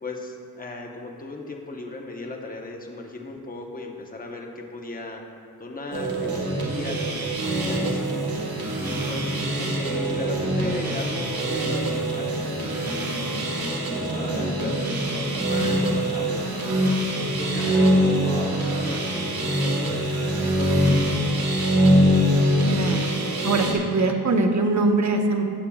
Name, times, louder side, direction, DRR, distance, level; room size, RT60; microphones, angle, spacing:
voice 1, 0.0-5.2 5.6-8.2 8.8-16.9 17.4-20.0 20.4-21.9, left 2 dB, 20° left, 1 dB, 0.9 m, -37 dB
sound 1, 5.9-23.7, right 1 dB, 65° right, 1.6 m, -24 dB
Speech, 17.1-21.1, left 1 dB, 90° left, 2.1 m, -41 dB
voice 2, 22.7-23.1 23.4-25.4, right 3 dB, 45° right, 3 dB, 0.9 m, -22 dB
14.5 x 8.3 x 2.3 m, 2.7 s
wide cardioid pair, 105°, 38 cm